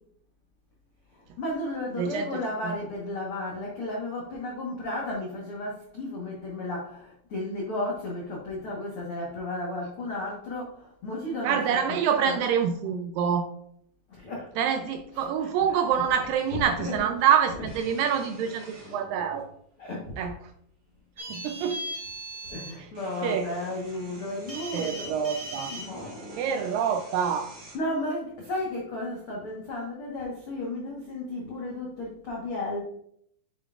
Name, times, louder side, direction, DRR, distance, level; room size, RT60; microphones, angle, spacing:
voice 1, 1.1-12.4 14.1-14.5 15.1-16.0 16.5-17.1 17.5-17.7 19.8-20.1 21.5-21.7 22.5-26.4 27.7-32.8, left 1 dB, 80° left, -3 dB, 1.2 m, -34 dB
voice 2, 2.0-2.3 2.6-2.7 11.4-13.5 14.6-19.5 20.2-20.3 21.3-21.8 22.8-22.9 23.2-23.5 24.7-25.7 26.4-27.5, right 8 dB, 80° right, 6 dB, 2.0 m, -26 dB
sound 1, 14.7-14.8 16.4-16.9 17.6-19.4 20.4-20.5 22.0-22.1 22.4-27.8, right 1 dB, 50° right, 2.6 m, -48 dB
sound 2, 21.2-22.7 24.5-25.8, right 1 dB, 15° right, 1.8 m, -37 dB
7.4 x 7.0 x 2.4 m, 0.69 s
omnidirectional pair, 4.4 m